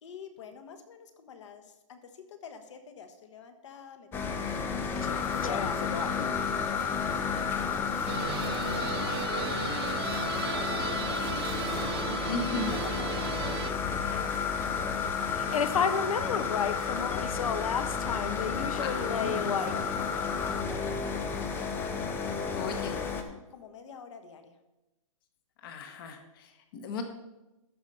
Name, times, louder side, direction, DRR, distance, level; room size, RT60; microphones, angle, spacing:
voice 1, 0.0-7.7 8.0-9.5 10.5-13.7 14.0-18.0 19.0-21.5 22.4-24.6, left 6 dB, 60° left, 7 dB, 1.3 m, -49 dB
sound 1, 4.1-23.2, left 5 dB, 10° left, 0.6 m, -34 dB
sound 2, 5.0-20.6, left 7 dB, 80° left, 0.8 m, -32 dB
sound 3, 8.1-13.7, right 9 dB, 45° right, 0.6 m, -36 dB
voice 2, 12.3-12.7 18.8-19.5 22.5-22.9 25.6-27.0, left 4 dB, 40° left, 6 dB, 1.1 m, -36 dB
13.5 x 5.2 x 4.2 m, 0.99 s
hypercardioid pair, 155°, 17 cm